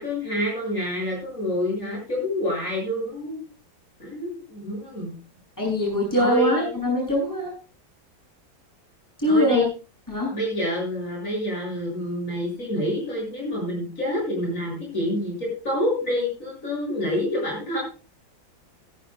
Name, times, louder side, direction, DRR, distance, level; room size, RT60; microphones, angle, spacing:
voice 1, 0.0-3.4 4.0-5.1 6.2-6.7 9.3-9.7 10.3-17.8, left 1 dB, 45° left, -3 dB, 7.7 m, -27 dB
voice 2, 5.6-7.5 9.2-9.6 10.1-10.3, equal, 10° left, -2 dB, 8.1 m, -22 dB
17.0 x 16.0 x 2.4 m, 0.32 s
omnidirectional pair, 2.0 m